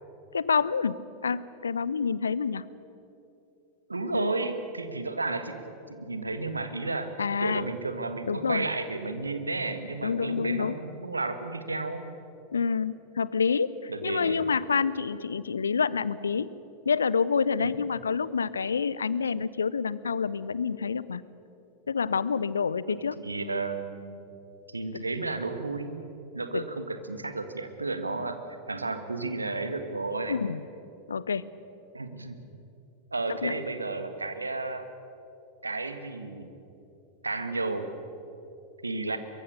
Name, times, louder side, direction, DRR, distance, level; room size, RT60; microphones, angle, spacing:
voice 1, 0.3-1.0 1.2-2.6 4.1-4.3 7.2-7.7 8.3-8.7 10.0-10.8 12.5-16.5 16.9-21.2 21.9-23.2 24.9-25.0 26.5-26.6 30.3-30.6 31.1-31.4 33.4-33.5, left 5 dB, 70° left, 19 dB, 0.6 m, -28 dB
voice 2, 3.9-5.6 5.9-7.1 7.4-12.0 13.9-14.4 17.6-17.7 22.9-24.2 24.7-26.1 26.3-28.4 28.7-30.4 31.9-32.4 33.1-34.9 35.6-36.5 37.2-37.9 38.8-39.2, right 3 dB, 80° right, 9 dB, 1.6 m, -32 dB
23.5 x 23.0 x 6.7 m, 2.9 s
figure-of-eight pair, 90°, 0 cm